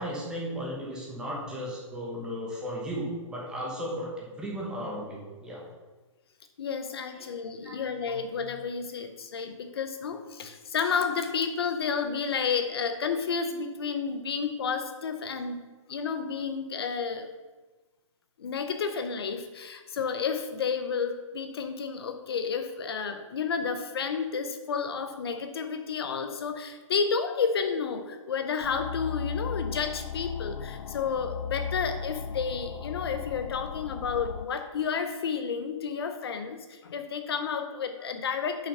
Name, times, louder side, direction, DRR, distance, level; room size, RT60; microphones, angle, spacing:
voice 1, 0.0-5.6 7.2-7.3 7.6-7.8, equal, 5° right, -3 dB, 1.0 m, -35 dB
voice 2, 6.6-15.6 15.9-17.3 18.4-38.7, left 6 dB, 50° left, 8 dB, 0.7 m, -31 dB
sound 1, 28.6-34.5, left 6 dB, 85° left, 0.4 m, -36 dB
6.9 x 5.9 x 5.5 m, 1.2 s
hypercardioid pair, 175°, 16 cm